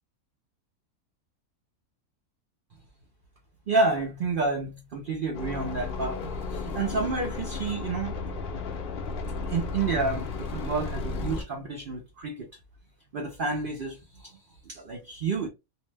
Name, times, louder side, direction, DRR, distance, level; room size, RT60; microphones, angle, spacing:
voice 1, 3.7-8.2 9.5-12.5 13.1-15.5, right 3 dB, 60° right, 0.5 m, -30 dB
sound 1, 5.3-11.4, left 4 dB, 55° left, 0.6 m, -34 dB
2.6 x 2.0 x 3.2 m
omnidirectional pair, 1.5 m